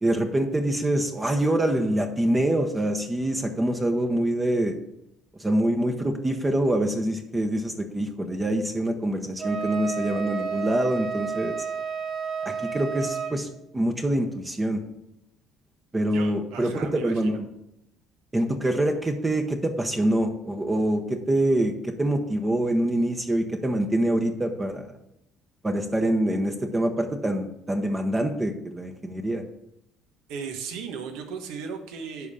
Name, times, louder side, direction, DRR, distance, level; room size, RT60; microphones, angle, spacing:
voice 1, 0.0-4.8 5.4-11.5 12.4-13.5 13.7-14.8 15.9-16.7 17.0-17.5 18.3-25.0 25.6-29.4, right 1 dB, 20° right, 4 dB, 0.9 m, -25 dB
Wind instrument woodwind instrument, 9.4-13.4, right 6 dB, 45° right, 3.4 m, -31 dB
voice 2, 16.1-17.4 30.3-32.3, right 6 dB, 80° right, 5 dB, 1.2 m, -36 dB
10.5 x 3.7 x 6.8 m, 0.83 s
supercardioid pair, 85°, 0 cm